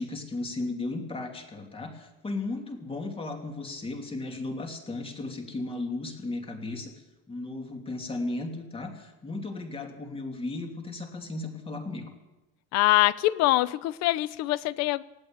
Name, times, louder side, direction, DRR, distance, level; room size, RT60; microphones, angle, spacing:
voice 1, 0.0-12.1, left 2 dB, 15° left, 4 dB, 2.9 m, -35 dB
voice 2, 12.7-15.0, left 17 dB, 55° left, 18 dB, 0.9 m, -24 dB
19.0 x 16.5 x 9.0 m, 1.0 s
cardioid pair, 165°, 33 cm